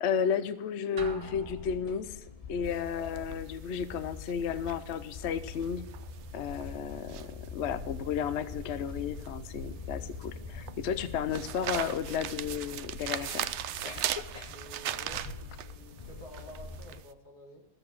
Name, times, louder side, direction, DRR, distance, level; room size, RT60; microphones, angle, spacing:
voice 1, 0.0-2.2 2.5-5.9 6.3-13.5, left 7 dB, 60° left, 13 dB, 0.8 m, -33 dB
sound 1, 1.0-2.4, right 2 dB, 85° right, 2.1 m, -44 dB
sound 2, 1.2-17.0, left 4 dB, 35° left, 0.6 m, -44 dB
sound 3, 2.7-17.1, right 11 dB, 70° right, 0.7 m, -39 dB
voice 2, 14.5-17.7, left 1 dB, 80° left, 1 dB, 2.8 m, -50 dB
13.5 x 7.8 x 6.4 m, 0.88 s
omnidirectional pair, 1.6 m